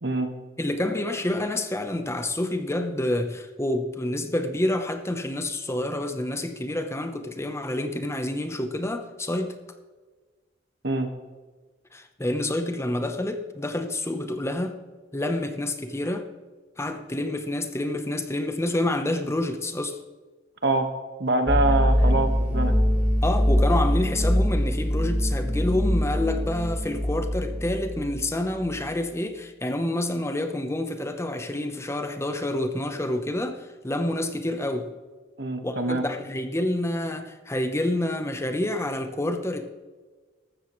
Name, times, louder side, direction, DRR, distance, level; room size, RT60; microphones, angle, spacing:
voice 1, 0.6-9.5 11.9-14.8 15.1-16.3 16.8-20.0 23.2-34.9 35.6-39.7, left 1 dB, 15° left, 0.9 m, -28 dB
voice 2, 21.2-22.8 35.4-36.0, right 2 dB, 65° right, 1.6 m, -24 dB
sound 1, 21.5-28.8, equal, 10° right, 2.0 m, -23 dB
15.0 x 13.0 x 3.2 m
head